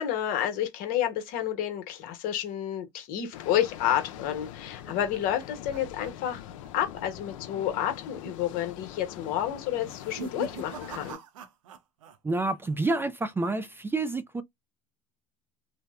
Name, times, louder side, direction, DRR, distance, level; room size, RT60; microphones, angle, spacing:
voice 1, 0.0-6.5 6.7-11.2, left 11 dB, 65° left, 1.0 m, -30 dB
sound 1, 3.3-11.1, left 11 dB, 85° left, 0.5 m, -43 dB
sound 2, 4.2-6.7 7.0-7.3 7.6-7.7 8.5-8.9 9.7-12.2 12.4-13.0, right 5 dB, 90° right, 0.5 m, -44 dB
voice 2, 12.2-14.4, right 2 dB, 15° right, 0.3 m, -28 dB
2.8 x 2.1 x 2.3 m
hypercardioid pair, 85°, 16 cm